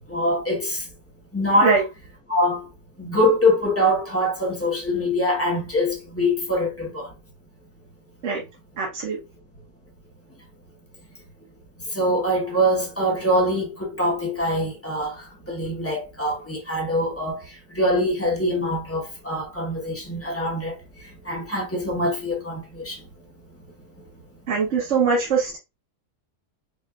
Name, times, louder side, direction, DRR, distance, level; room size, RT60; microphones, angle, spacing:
voice 1, 0.1-0.9 1.3-1.8 2.3-2.7 3.0-7.1 11.8-23.0, equal, 10° left, 0.8 m, -24 dB
voice 2, 8.8-9.2 24.5-25.6, right 5 dB, 55° right, 1.2 m, -22 dB
5.2 x 2.4 x 2.4 m
omnidirectional pair, 1.5 m